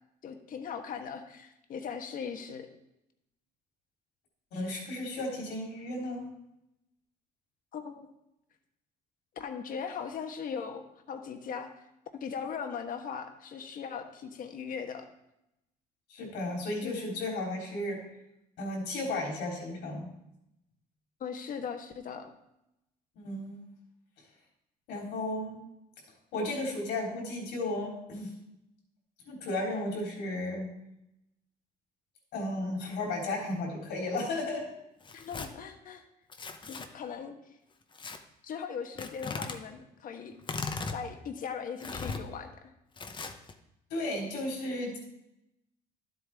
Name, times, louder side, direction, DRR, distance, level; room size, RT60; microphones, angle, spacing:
voice 1, 0.2-2.7 7.7-8.1 9.3-11.7 12.2-15.1 16.8-17.0 21.2-22.3 35.1-36.0 36.7-37.3 38.4-40.3 40.9-42.7, left 6 dB, 55° left, 5 dB, 1.4 m, -39 dB
voice 2, 4.5-6.3 16.1-18.0 18.6-20.1 23.2-23.6 24.9-25.6 26.3-28.3 29.3-30.7 32.3-34.7 43.9-45.0, left 2 dB, 80° left, -1 dB, 3.6 m, -34 dB
Tearing, 35.0-35.5 36.3-36.9 37.9-38.2 39.0-39.6 40.4-41.0 41.8-42.2 43.0-43.5, left 4 dB, 30° left, 0.9 m, -37 dB
12.0 x 8.0 x 3.5 m, 0.86 s
cardioid pair, 110°, 17 cm